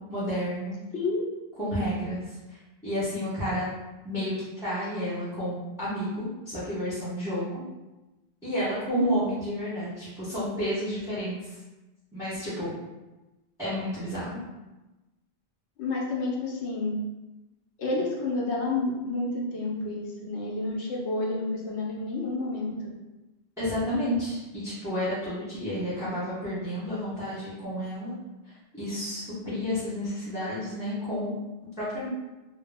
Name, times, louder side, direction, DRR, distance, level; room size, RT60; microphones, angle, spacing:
voice 1, 0.1-0.8 1.6-2.6 2.8-3.7 4.0-7.6 8.4-11.6 12.1-12.7 13.6-14.4 23.6-28.1 28.5-31.3 31.8-32.1, equal, 5° right, -11 dB, 0.6 m, -31 dB
voice 2, 15.8-17.0 17.8-22.7, left 2 dB, 85° left, -3 dB, 0.9 m, -30 dB
2.1 x 2.0 x 3.3 m, 1.0 s
omnidirectional pair, 1.1 m